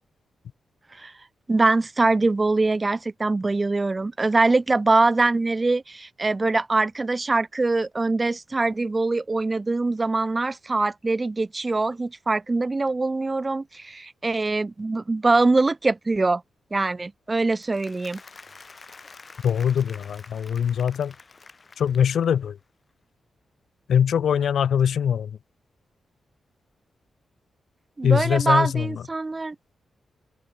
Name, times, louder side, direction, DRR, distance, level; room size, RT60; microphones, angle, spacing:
voice 1, 1.5-16.4 16.7-18.2 28.0-29.6, right 3 dB, 20° right, 0.4 m, -23 dB
Applause, 17.5-22.5, left 4 dB, 30° left, 3.1 m, -48 dB
voice 2, 19.4-21.1 21.8-22.6 23.9-25.4 28.0-29.0, left 8 dB, 70° left, 1.0 m, -22 dB
open air
wide cardioid pair, 160°, 0 cm